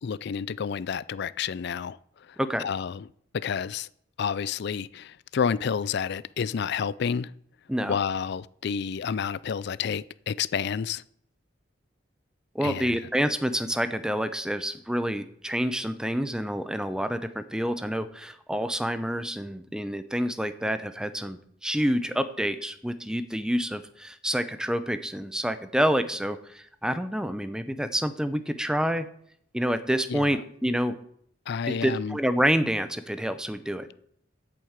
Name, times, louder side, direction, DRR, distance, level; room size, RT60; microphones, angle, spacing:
voice 1, 0.0-3.1 3.3-3.9 4.2-7.3 7.9-11.0 12.6-13.0 30.1-30.4 31.5-32.2, left 6 dB, 60° left, 0.4 m, -30 dB
voice 2, 12.5-29.1 29.5-30.9 31.7-33.9, equal, 5° right, 0.7 m, -28 dB
8.5 x 7.6 x 8.1 m
head